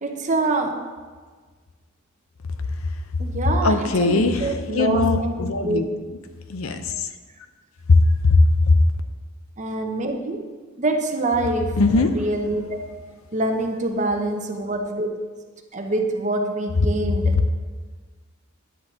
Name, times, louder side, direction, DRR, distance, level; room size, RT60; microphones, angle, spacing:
voice 1, 0.0-0.8 3.2-5.8 9.6-10.4 10.8-12.8 13.3-15.1 15.7-17.3, right 2 dB, 35° right, 3 dB, 0.9 m, -25 dB
voice 2, 3.6-5.9 6.5-7.1 7.9-8.8 11.8-12.1, left 3 dB, 70° left, 8 dB, 0.7 m, -19 dB
10.0 x 4.0 x 7.2 m, 1.4 s
head